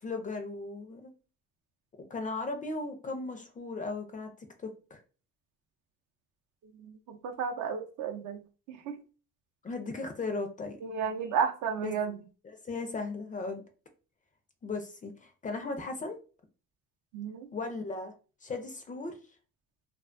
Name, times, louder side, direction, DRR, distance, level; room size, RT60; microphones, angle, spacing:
voice 1, 0.0-1.1 2.1-4.3 4.6-5.0 9.6-10.8 11.8-11.9 12.4-13.6 14.6-16.2 17.5-18.1 18.4-19.2, left 3 dB, 25° left, 0.4 m, -36 dB
voice 2, 6.8-8.4 8.7-9.0 10.8-12.2 17.1-17.5, right 7 dB, 65° right, 0.6 m, -33 dB
2.3 x 2.2 x 2.4 m
cardioid pair, 100°, 33 cm